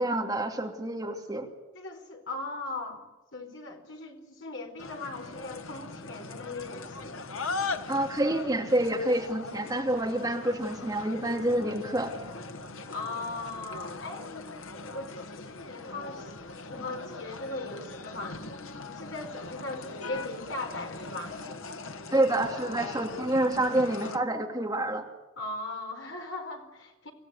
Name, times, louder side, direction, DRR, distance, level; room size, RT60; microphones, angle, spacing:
voice 1, 0.0-1.5 7.9-12.1 22.1-25.0, right 1 dB, 15° right, 2 dB, 2.6 m, -28 dB
voice 2, 1.7-3.0 3.3-7.2 12.9-14.3 14.8-16.3 16.7-18.4 18.9-21.4 25.4-27.1, left 2 dB, 65° left, 3 dB, 4.4 m, -38 dB
sound 1, 4.8-24.2, left 3 dB, 85° left, 1.6 m, -40 dB
25.5 x 16.0 x 9.6 m, 1.1 s
head